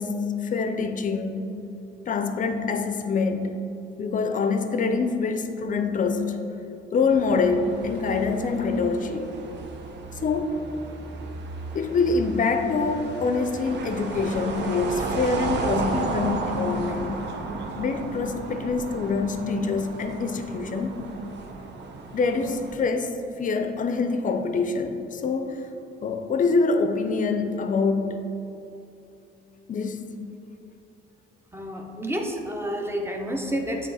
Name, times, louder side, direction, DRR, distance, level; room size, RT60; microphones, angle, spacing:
voice 1, 0.0-1.5 2.1-3.6 4.0-6.4 6.9-9.3 10.2-10.6 11.7-17.3 17.7-21.0 22.1-25.6 26.0-28.3 29.7-30.1, left 4 dB, 40° left, 7 dB, 0.5 m, -25 dB
sound 1, 7.1-22.7, right 4 dB, 60° right, 0.6 m, -34 dB
voice 2, 31.5-33.9, equal, 10° right, 2 dB, 0.7 m, -29 dB
7.6 x 3.3 x 4.1 m, 2.8 s
cardioid pair, 90°, 20 cm